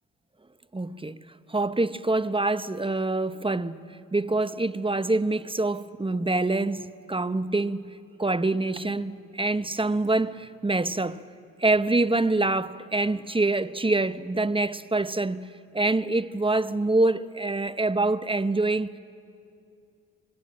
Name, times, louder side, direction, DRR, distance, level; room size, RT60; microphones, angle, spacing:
voice 1, 0.7-1.2 1.5-3.8 4.1-7.9 8.2-11.2 11.6-15.5 15.7-18.9, right 2 dB, 15° right, 0.7 m, -25 dB
25.0 x 21.0 x 6.2 m
supercardioid pair, 45°, 35 cm